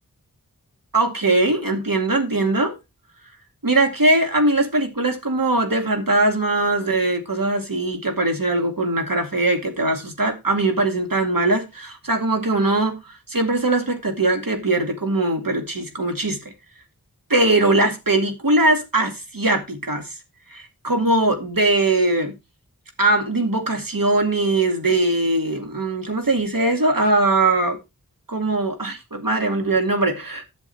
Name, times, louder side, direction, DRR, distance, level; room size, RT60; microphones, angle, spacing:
voice 1, 0.9-2.7 3.6-16.4 17.3-20.1 20.5-22.3 23.0-27.8 28.3-30.4, right 2 dB, 70° right, 2.4 m, -21 dB
10.5 x 7.3 x 4.4 m
wide cardioid pair, 50°, 35 cm